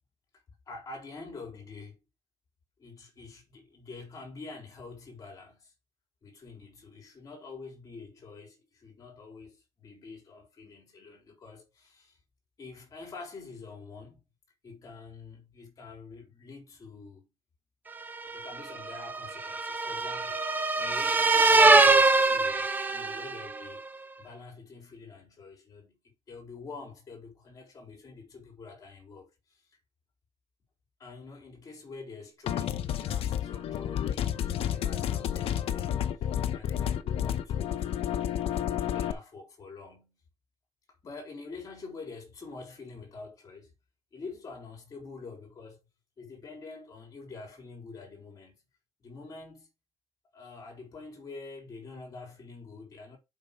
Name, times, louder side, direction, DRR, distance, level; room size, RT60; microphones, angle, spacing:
voice 1, 0.7-2.0 2.8-5.7 6.2-12.2 12.6-14.2 14.6-17.3 18.3-20.4 20.8-23.8 24.2-29.6 31.0-36.0 36.5-40.2 41.0-43.7 44.1-45.9 46.2-48.6 49.0-49.7 50.3-53.2, left 4 dB, 35° left, 3.9 m, -46 dB
sound 1, 18.1-23.6, right 3 dB, 20° right, 0.8 m, -23 dB
sound 2, 32.5-39.1, left 10 dB, 75° left, 0.9 m, -30 dB
7.4 x 5.5 x 5.2 m
cardioid pair, 175°, 10 cm